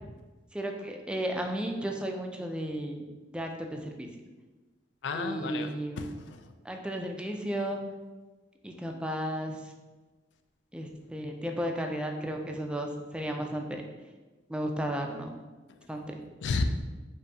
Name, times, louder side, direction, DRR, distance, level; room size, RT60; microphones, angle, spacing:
voice 1, 0.5-3.0 3.3-4.1 5.1-6.1 6.6-7.8 8.6-9.6 10.7-13.8 14.5-15.3 15.9-16.2, right 1 dB, 5° right, 3 dB, 0.3 m, -34 dB
voice 2, 5.0-6.5 16.4-16.6, left 4 dB, 70° left, 7 dB, 0.3 m, -33 dB
5.2 x 2.6 x 2.7 m, 1.2 s
head